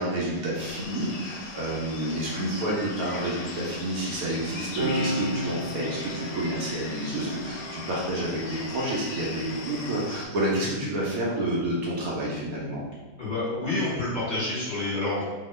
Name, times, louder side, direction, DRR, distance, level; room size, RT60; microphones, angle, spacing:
voice 1, 0.0-12.8, right 1 dB, 70° right, -4 dB, 1.0 m, -29 dB
sound 1, 0.6-10.3, left 3 dB, 75° left, 1.1 m, -39 dB
sound 2, 4.8-11.7 12.7-14.5, equal, 40° right, 0.8 m, -37 dB
voice 2, 13.2-15.2, left 2 dB, 30° left, -9 dB, 1.3 m, -28 dB
2.9 x 2.1 x 3.1 m, 1.4 s
omnidirectional pair, 1.8 m